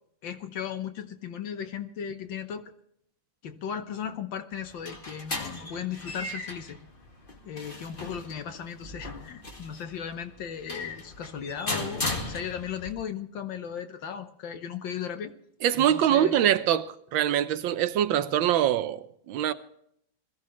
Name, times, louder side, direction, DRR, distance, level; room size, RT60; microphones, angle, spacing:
voice 1, 0.2-2.7 3.4-6.8 7.4-15.3 15.8-16.4, left 8 dB, 70° left, 1.6 m, -36 dB
sound 1, 4.5-12.9, left 2 dB, 25° left, 2.0 m, -37 dB
voice 2, 15.6-19.5, right 10 dB, 75° right, 1.4 m, -24 dB
21.0 x 14.5 x 3.1 m
omnidirectional pair, 2.2 m